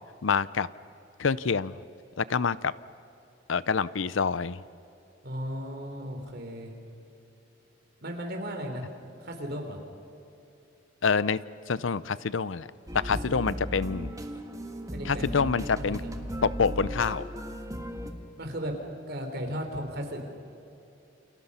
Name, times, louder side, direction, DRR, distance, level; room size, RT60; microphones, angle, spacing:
voice 1, 0.2-0.7 1.2-1.8 2.2-2.7 3.5-4.6 11.0-11.4 11.7-12.7 12.9-14.1 15.1-16.0 16.4-17.2, left 5 dB, 80° left, 17 dB, 0.6 m, -26 dB
voice 2, 5.2-6.7 8.0-8.8 9.2-9.8 13.1-13.3 14.9-16.2 18.4-18.7 19.1-20.2, equal, 55° right, 3 dB, 3.9 m, -36 dB
sound 1, 12.9-18.1, equal, 20° right, 1.7 m, -36 dB
29.5 x 28.0 x 5.7 m, 2.8 s
head